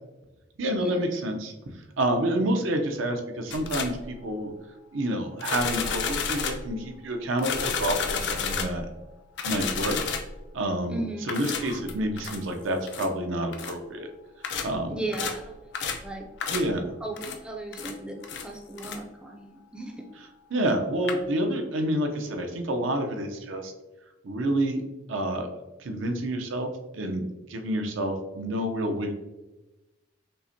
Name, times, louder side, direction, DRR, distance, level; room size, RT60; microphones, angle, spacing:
voice 1, 0.6-1.5 2.0-4.5 4.9-8.9 9.4-10.0 10.5-14.1 14.6-15.0 16.5-16.9 20.5-23.7 24.2-24.8 25.1-25.5 25.8-26.7 26.9-27.2 27.5-29.1, right 1 dB, 85° right, 5 dB, 0.6 m, -28 dB
sound 1, 3.5-4.0 5.4-6.7 7.4-8.9 9.4-10.4 11.3-12.4 12.9-13.1 13.5-13.8 14.4-14.8 15.1-15.4 15.7-16.1 16.4-16.8 17.1-17.4 17.7-18.0 18.2-18.5 18.8-19.0 20.7-20.8 21.0-21.1, left 5 dB, 65° left, 0.4 m, -31 dB
voice 2, 10.9-11.3 14.9-15.5 16.0-16.2 17.0-20.1, right 2 dB, 5° right, 2 dB, 0.4 m, -36 dB
5.4 x 2.1 x 2.6 m, 1.1 s
head